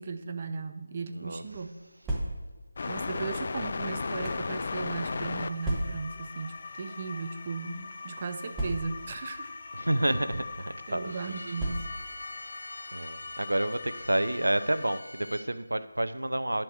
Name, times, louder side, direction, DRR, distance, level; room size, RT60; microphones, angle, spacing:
voice 1, 0.0-1.7 2.9-9.5 10.1-10.2 10.9-11.9, right 4 dB, 30° right, 8 dB, 0.6 m, -36 dB
sound 1, 1.8-2.7 3.5-4.5 5.6-6.2 7.1-7.3 7.5-7.6 8.5-9.2 10.1-10.3 11.6-12.2, right 1 dB, 10° right, 1.0 m, -34 dB
sound 2, 2.8-15.0, left 4 dB, 40° left, 0.4 m, -38 dB
voice 2, 9.7-11.4 12.9-16.6, right 1 dB, 80° right, 12 dB, 0.6 m, -29 dB
Bowed string instrument, 11.0-15.5, left 1 dB, 75° left, 1.8 m, -45 dB
10.5 x 4.7 x 6.4 m, 1.2 s
figure-of-eight pair, 160°, 0 cm